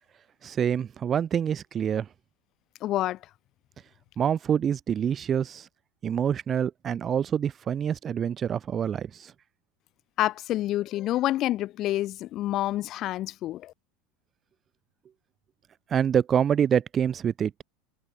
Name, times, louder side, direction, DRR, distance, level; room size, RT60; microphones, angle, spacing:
voice 1, 0.4-2.1 4.2-5.7 6.0-9.3 15.9-17.6, right 8 dB, 20° right, 1.1 m, -26 dB
voice 2, 2.8-3.2 10.2-13.7, left 14 dB, 35° left, 1.6 m, -28 dB
supercardioid pair, 165°, 0 cm